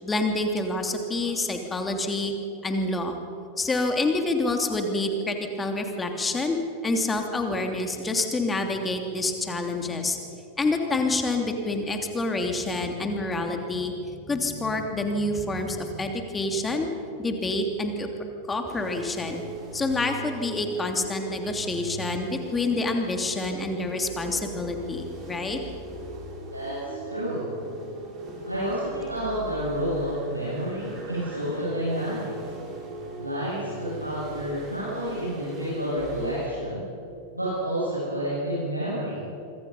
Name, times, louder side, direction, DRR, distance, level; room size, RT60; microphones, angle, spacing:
voice 1, 0.0-2.3 2.6-3.2 3.6-10.2 10.6-14.0 14.2-16.9 17.2-18.1 18.5-19.4 19.7-25.6 28.2-28.5, left 2 dB, 15° left, 4 dB, 3.0 m, -27 dB
sound 1, 18.7-36.5, right 1 dB, 30° right, 6.1 m, -39 dB
voice 2, 26.5-27.5 28.5-32.3 33.2-36.8 37.3-39.1, right 1 dB, 85° right, -10 dB, 7.9 m, -30 dB
26.5 x 24.5 x 5.7 m, 2.9 s
figure-of-eight pair, 90°, 0 cm